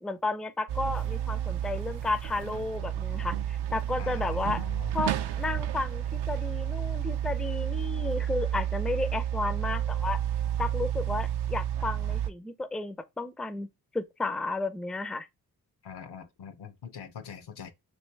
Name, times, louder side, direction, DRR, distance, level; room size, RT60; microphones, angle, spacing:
voice 1, 0.0-4.6 4.9-10.2 10.6-13.7 13.9-15.3, left 3 dB, ahead, 0.4 m, -33 dB
sound 1, 0.7-12.3, right 11 dB, 85° right, 0.6 m, -31 dB
voice 2, 4.0-5.0 15.8-17.7, left 7 dB, 80° left, 0.9 m, -43 dB
3.2 x 3.1 x 4.4 m
cardioid pair, 80°, 39 cm